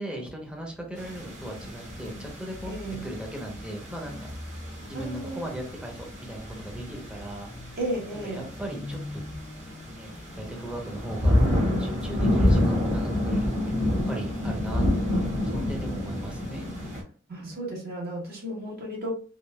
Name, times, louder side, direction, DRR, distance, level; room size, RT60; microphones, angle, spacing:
voice 1, 0.0-4.3 4.8-7.5 8.1-9.2 9.9-11.4 11.8-16.7, right 1 dB, 5° right, 0 dB, 0.9 m, -38 dB
sound 1, 1.0-17.0, left 1 dB, 40° right, 1.3 m, -29 dB
sound 2, 2.4-16.7, left 2 dB, 40° left, 0.5 m, -41 dB
voice 2, 2.7-3.0 4.9-5.4 7.8-8.5 17.3-19.1, right 1 dB, 55° right, -3 dB, 1.6 m, -34 dB
3.7 x 3.4 x 2.3 m, 0.40 s
head